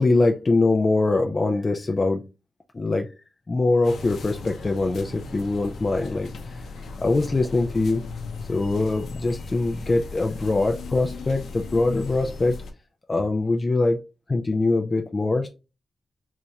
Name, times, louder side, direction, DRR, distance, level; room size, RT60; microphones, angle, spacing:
voice 1, 0.0-2.2 2.7-3.1 3.5-6.7 7.0-8.1 8.5-12.6 13.1-14.0 14.3-15.5, left 2 dB, 25° left, 0.3 m, -23 dB
sound 1, 3.8-12.7, left 3 dB, 75° left, 0.6 m, -37 dB
3.9 x 3.1 x 2.3 m
wide cardioid pair, 165°, 0 cm